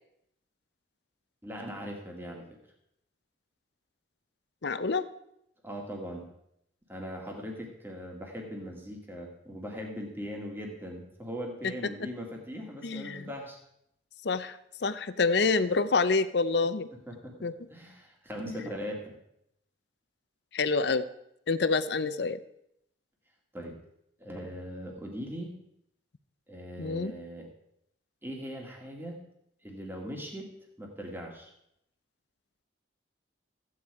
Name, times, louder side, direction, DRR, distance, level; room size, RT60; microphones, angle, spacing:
voice 1, 1.4-2.6 5.6-6.3 6.9-13.6 17.1-19.2 23.5-23.8 24.2-25.5 26.5-27.5 28.2-29.2 29.6-30.5 30.8-31.5, equal, 10° right, 0 dB, 2.0 m, -40 dB
voice 2, 4.6-5.1 11.6-11.7 12.0-12.1 12.8-13.2 14.2-16.9 17.4-17.5 18.4-18.6 20.5-21.0 21.5-22.4 26.8-27.1, left 4 dB, 60° left, 13 dB, 0.6 m, -27 dB
14.5 x 8.9 x 4.8 m, 0.79 s
head